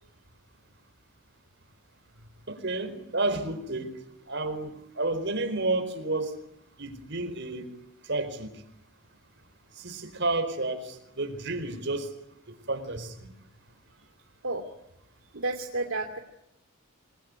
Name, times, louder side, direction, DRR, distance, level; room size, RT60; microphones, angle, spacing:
voice 1, 2.5-3.9 4.3-6.3 6.8-7.7 8.1-8.5 9.8-12.1 12.5-13.3, right 2 dB, 60° right, 9 dB, 4.6 m, -31 dB
voice 2, 15.3-16.2, right 2 dB, 75° right, 3 dB, 2.8 m, -31 dB
28.5 x 21.5 x 9.7 m, 0.84 s
head